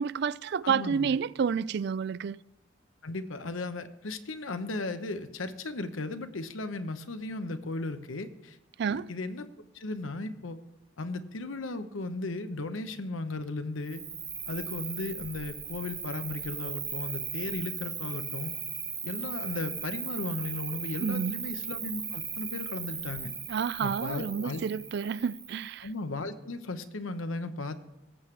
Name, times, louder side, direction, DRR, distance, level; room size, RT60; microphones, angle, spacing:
voice 1, 0.0-2.4 8.8-9.1 21.0-21.4 23.5-25.9, right 6 dB, 55° right, 0.3 m, -30 dB
voice 2, 0.6-1.1 3.0-8.6 8.9-9.5 9.7-10.6 11.0-14.0 14.5-18.6 19.0-23.3 23.8-24.6 25.8-27.8, left 2 dB, 90° left, 0.9 m, -36 dB
Cricket, 13.8-25.8, right 7 dB, 20° right, 0.7 m, -37 dB
17.5 x 7.7 x 3.3 m
head